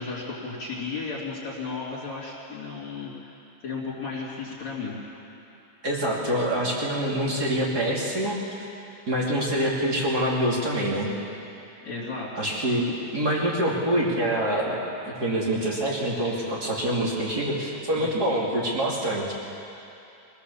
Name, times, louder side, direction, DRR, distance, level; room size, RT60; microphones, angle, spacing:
voice 1, 0.0-3.3 3.6-5.0 11.8-12.5 17.9-18.1, left 4 dB, 40° left, -7 dB, 3.8 m, -34 dB
voice 2, 5.8-8.4 9.1-11.2 12.4-14.8 15.0-19.3, right 1 dB, 25° right, -3 dB, 2.6 m, -25 dB
24.0 x 19.0 x 7.1 m, 2.8 s
omnidirectional pair, 5.2 m